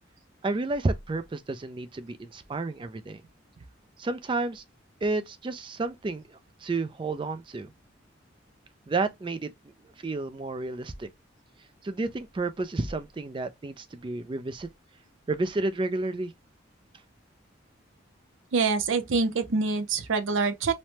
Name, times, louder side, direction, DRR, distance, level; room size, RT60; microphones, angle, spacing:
voice 1, 0.4-3.2 4.0-4.6 5.0-7.7 8.9-9.5 10.0-11.1 11.8-14.7 15.3-16.3, right 3 dB, 25° right, 0.3 m, -31 dB
voice 2, 18.5-20.7, right 4 dB, 80° right, 0.5 m, -25 dB
3.1 x 2.0 x 2.8 m
head